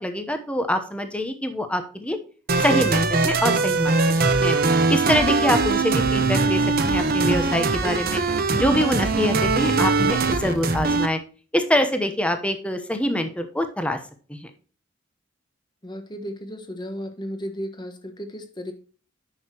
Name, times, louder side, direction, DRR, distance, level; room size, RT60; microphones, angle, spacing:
voice 1, 0.0-2.2 2.6-4.5 4.9-8.2 8.5-11.2 11.5-14.0 14.3-14.5, left 1 dB, 5° left, 7 dB, 0.8 m, -25 dB
sound 1, 2.5-11.1, right 3 dB, 50° right, 1.0 m, -21 dB
voice 2, 15.8-18.7, equal, 20° left, 7 dB, 1.2 m, -34 dB
9.7 x 6.4 x 2.9 m, 0.39 s
head